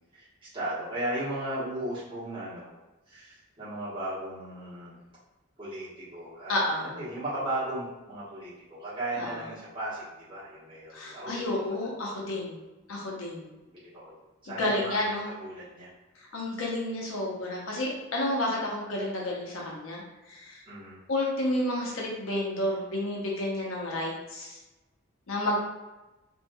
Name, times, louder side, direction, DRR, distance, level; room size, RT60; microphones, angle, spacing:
voice 1, 0.1-2.7 3.1-4.9 5.6-11.9 13.7-14.1 14.4-15.9 20.7-21.0, right 1 dB, 25° right, -11 dB, 1.1 m, -36 dB
voice 2, 6.5-6.9 9.2-9.3 10.9-12.6 12.9-13.5 14.6-15.3 16.2-20.0 20.3-20.6 21.1-24.6 25.3-25.6, left 1 dB, 80° left, -3 dB, 0.7 m, -30 dB
3.0 x 2.6 x 2.2 m, 1.1 s
head